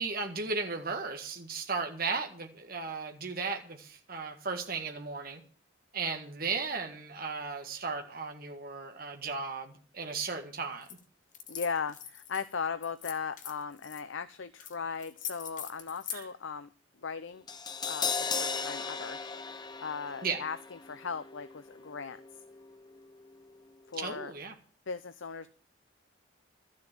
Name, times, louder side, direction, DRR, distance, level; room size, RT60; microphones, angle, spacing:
voice 1, 0.0-5.4 5.9-10.9 16.1-16.3 20.2-20.4 24.0-24.5, right 4 dB, 45° right, 3 dB, 1.9 m, -35 dB
sound 1, 10.8-11.0 11.3-12.4 12.8-14.0 14.6-14.7 15.0-16.2, left 9 dB, 40° left, 1.5 m, -42 dB
voice 2, 11.5-16.7 17.0-17.4 17.8-19.2 19.8-22.2 23.9-24.3 24.9-25.5, left 5 dB, 80° left, 12 dB, 0.7 m, -37 dB
Crash cymbal, 17.5-23.6 23.9-24.0, left 5 dB, 20° left, 0.7 m, -38 dB
13.0 x 7.5 x 8.9 m, 0.42 s
head